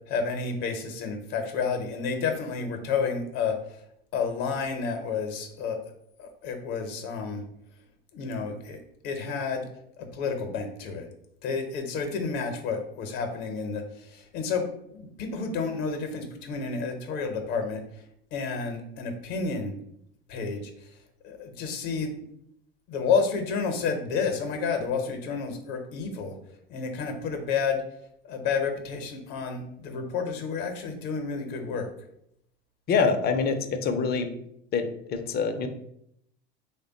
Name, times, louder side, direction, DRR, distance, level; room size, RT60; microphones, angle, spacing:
voice 1, 0.1-3.5 4.1-5.8 6.2-7.4 8.1-8.8 9.0-9.7 10.0-11.1 11.4-14.7 14.9-17.8 18.3-19.7 20.3-20.7 21.2-22.1 22.9-26.3 26.7-27.8 28.2-31.9, left 5 dB, 60° left, 5 dB, 0.8 m, -30 dB
voice 2, 32.9-33.6 33.8-34.3 34.7-35.7, left 5 dB, 35° left, 7 dB, 0.5 m, -25 dB
3.3 x 2.2 x 3.8 m, 0.74 s
hypercardioid pair, 80°, 30 cm